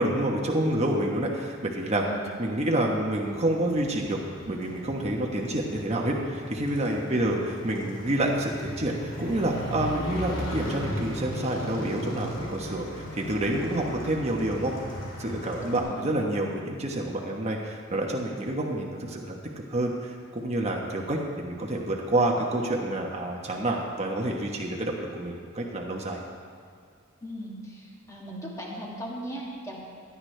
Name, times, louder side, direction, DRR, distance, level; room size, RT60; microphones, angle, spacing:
voice 1, 0.0-2.0 2.4-4.2 4.5-7.4 7.6-14.7 15.2-19.4 19.7-26.2, right 1 dB, 35° right, -1 dB, 1.2 m, -28 dB
Motorcycle, 3.2-15.8, equal, 65° left, 2.6 m, -37 dB
voice 2, 15.6-16.0 27.2-29.8, equal, 15° left, -4 dB, 2.0 m, -38 dB
16.5 x 11.0 x 3.4 m, 2.3 s
head